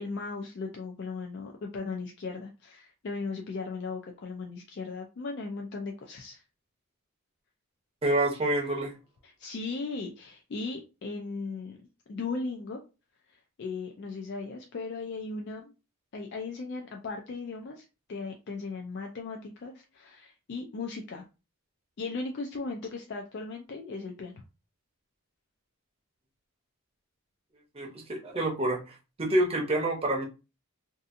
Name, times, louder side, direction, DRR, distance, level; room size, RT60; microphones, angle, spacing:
voice 1, 0.0-6.4 9.2-11.8 12.1-12.8 13.3-15.7 16.1-21.2 22.0-24.3, left 4 dB, 50° left, 2 dB, 0.3 m, -37 dB
voice 2, 8.0-8.9 27.7-30.2, right 1 dB, 25° right, 0 dB, 0.6 m, -28 dB
2.6 x 2.4 x 2.5 m, 0.30 s
head